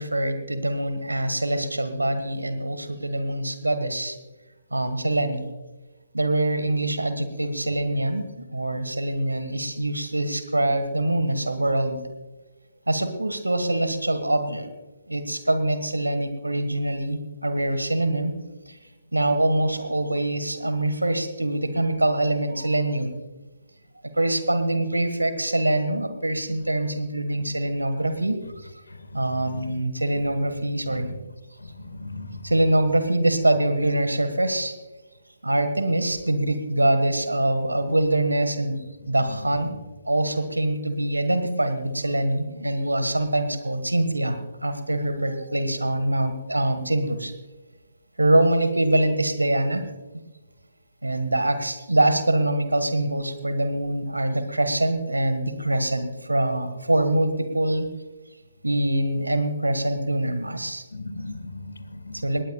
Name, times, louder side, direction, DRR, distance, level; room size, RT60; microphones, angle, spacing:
voice 1, 0.0-4.2 4.7-5.5 6.1-12.0 12.9-14.7 15.1-18.3 18.7-18.8 19.1-23.1 24.1-28.4 28.6-28.7 29.1-31.1 32.4-34.7 35.4-38.8 39.0-39.7 40.0-44.4 44.6-47.3 48.2-49.8 51.0-57.9 58.6-60.8 62.1-62.4, right 1 dB, 85° right, 9 dB, 1.5 m, -24 dB
voice 2, 28.9-29.8 30.8-31.2 31.6-32.5 39.0-39.8 60.9-62.3, left 2 dB, 75° left, 10 dB, 1.8 m, -38 dB
19.5 x 19.0 x 2.3 m, 1.2 s
figure-of-eight pair, 135°, 0 cm